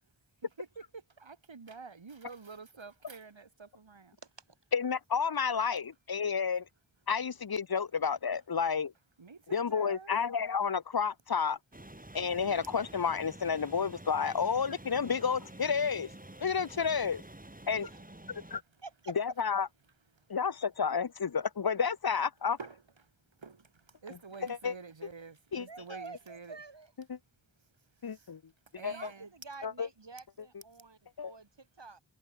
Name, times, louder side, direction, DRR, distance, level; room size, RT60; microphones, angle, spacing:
voice 1, 0.6-4.2 9.2-10.1 14.9-15.0 20.1-20.4 22.6-22.8 23.4-26.6 28.0-28.4 28.7-29.3, right 4 dB, 85° right, 4.1 m, -48 dB
voice 2, 4.7-6.6 7.1-8.9 9.5-11.6 12.1-16.1 16.4-17.2 17.7-17.8 18.5-18.6 19.2-19.7 20.3-22.6 24.6-24.7 25.5-25.7 27.1-27.2 28.0-28.4 28.8-28.9 29.6-29.9 31.2-31.3, left 6 dB, 55° left, 0.9 m, -30 dB
sound 1, 11.7-18.6, right 1 dB, 20° right, 4.1 m, -49 dB
voice 3, 18.8-19.2 25.7-26.9 28.9-32.0, right 3 dB, 65° right, 7.4 m, -48 dB
wide cardioid pair, 65°, 45 cm